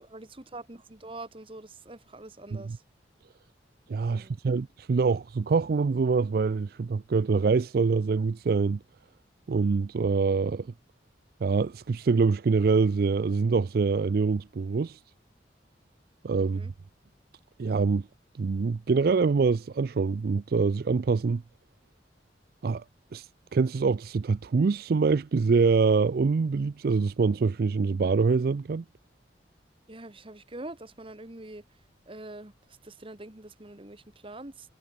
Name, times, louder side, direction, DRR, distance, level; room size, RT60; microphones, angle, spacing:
voice 1, 0.0-2.8 4.1-4.4 16.4-16.7 29.9-31.8 32.0-34.7, right 2 dB, 30° right, 1.6 m, -44 dB
voice 2, 3.9-8.8 9.5-10.7 11.4-15.0 16.2-16.7 17.6-18.1 18.4-21.4 22.6-22.8 23.1-28.8, right 4 dB, 55° right, 0.4 m, -25 dB
head